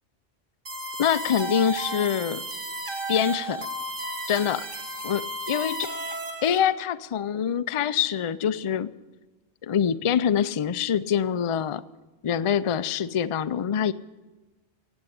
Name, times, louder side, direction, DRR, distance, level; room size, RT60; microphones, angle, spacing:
sound 1, 0.7-6.6, right 1 dB, 50° right, 2.4 m, -33 dB
voice 1, 1.0-2.4 3.1-3.7 4.3-4.7 5.0-5.9 6.4-8.9 9.6-11.8 12.2-13.9, left 8 dB, 50° left, 14 dB, 0.4 m, -25 dB
18.0 x 7.9 x 8.6 m, 1.2 s
omnidirectional pair, 1.1 m